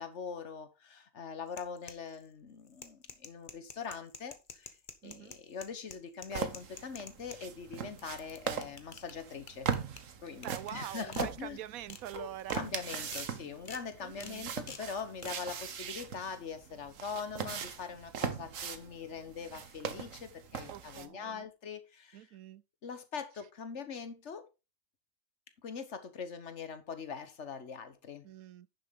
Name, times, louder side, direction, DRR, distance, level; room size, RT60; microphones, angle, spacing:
voice 1, 0.0-4.8 5.0-9.7 10.2-11.6 12.1-12.3 12.5-22.3 22.8-24.5 25.6-28.3, left 6 dB, 55° left, 1.4 m, -42 dB
sound 1, 1.5-2.3 2.7-7.4 7.8-9.1 9.5-10.0 10.4-10.7 11.1-11.3 11.7-12.0 12.4-12.6 13.1-13.3 13.6-13.8 14.2-14.3 14.7-14.8 15.2-15.3, left 5 dB, 40° left, 1.2 m, -47 dB
voice 2, 5.0-5.4 10.4-12.7 14.0-14.5 20.7-21.5 22.1-22.6 28.2-28.7, right 12 dB, 90° right, 1.1 m, -45 dB
sound 2, 6.3-21.1, right 7 dB, 70° right, 1.4 m, -40 dB
10.5 x 6.9 x 3.7 m
omnidirectional pair, 1.4 m